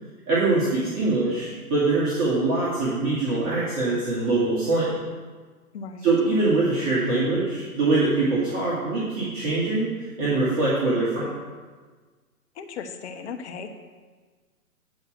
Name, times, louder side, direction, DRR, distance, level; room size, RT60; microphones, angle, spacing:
voice 1, 0.3-4.9 6.0-9.9 10.2-11.3, right 3 dB, 30° right, -9 dB, 2.4 m, -23 dB
voice 2, 5.7-6.1 12.6-13.7, left 6 dB, 50° left, 6 dB, 1.1 m, -36 dB
9.3 x 5.3 x 6.9 m, 1.4 s
hypercardioid pair, 130°, 45 cm